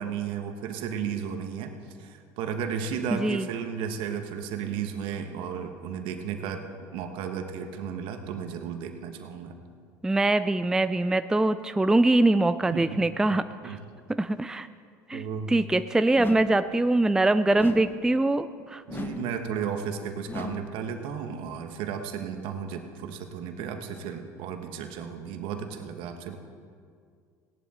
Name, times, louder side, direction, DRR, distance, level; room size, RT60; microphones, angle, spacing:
voice 1, 0.0-1.7 2.0-6.6 6.9-9.5 12.7-13.0 13.6-13.8 15.1-15.5 18.6-26.4, right 7 dB, 65° right, 6 dB, 1.5 m, -34 dB
voice 2, 3.1-3.5 10.0-13.8 14.1-14.7 15.1-18.8, right 2 dB, 5° right, 11 dB, 0.4 m, -23 dB
sound 1, 16.2-16.7 17.6-18.1 18.9-19.4 20.3-20.8, left 3 dB, 20° left, 1.2 m, -37 dB
17.0 x 10.5 x 4.4 m, 2.2 s
hypercardioid pair, 85°, 9 cm